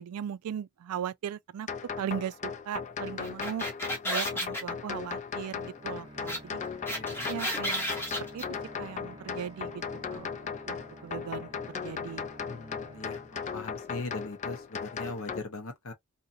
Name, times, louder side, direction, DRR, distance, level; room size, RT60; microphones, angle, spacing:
voice 1, 0.0-1.7 2.0-3.7 4.0-6.6 7.3-7.9 8.2-8.4 8.8-9.8 10.1-10.8 11.0-12.3, right 9 dB, 80° right, 0.3 m, -38 dB
sound 1, 1.7-15.4, left 6 dB, 35° left, 0.3 m, -37 dB
sound 2, 3.2-4.6 6.3-6.4 6.6-8.4, equal, 10° left, 0.8 m, -32 dB
Bowed string instrument, 5.7-14.0, right 1 dB, 20° right, 0.6 m, -51 dB
voice 2, 6.9-7.3 12.5-13.2 13.5-15.9, left 3 dB, 65° left, 0.8 m, -40 dB
2.7 x 2.6 x 2.5 m
head